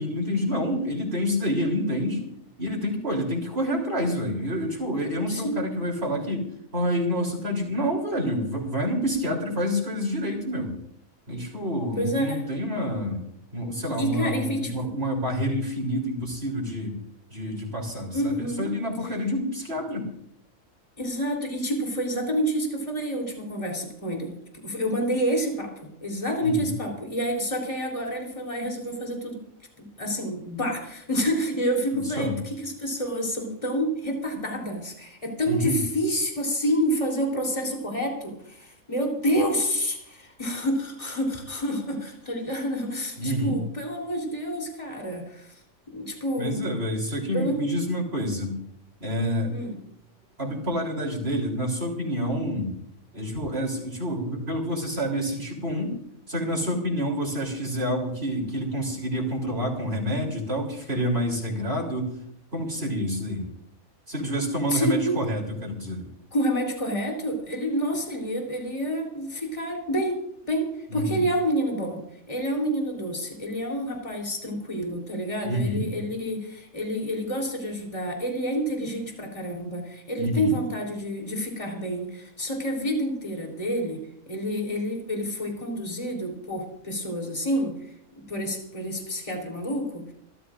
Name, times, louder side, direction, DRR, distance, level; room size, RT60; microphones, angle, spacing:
voice 1, 0.0-2.2 2.6-6.5 6.7-10.7 11.3-13.2 13.5-17.0 17.3-20.1 26.4-26.7 31.9-32.4 35.5-35.8 43.2-43.6 46.4-48.5 49.0-49.5 50.4-52.7 53.1-56.0 56.3-62.2 62.5-63.5 64.1-66.1 70.9-71.2 75.4-75.8 80.2-80.6, equal, 45° right, 0 dB, 3.8 m, -28 dB
voice 2, 5.3-5.6 12.0-12.4 14.0-14.9 18.1-18.7 21.0-24.3 24.6-29.4 29.8-45.6 45.9-46.7 47.3-47.8 49.5-49.8 64.7-65.2 66.3-72.0 72.3-84.0 84.3-87.7 88.3-90.1, equal, 25° left, 1 dB, 3.7 m, -28 dB
28.0 x 14.0 x 2.6 m, 0.72 s
omnidirectional pair, 1.4 m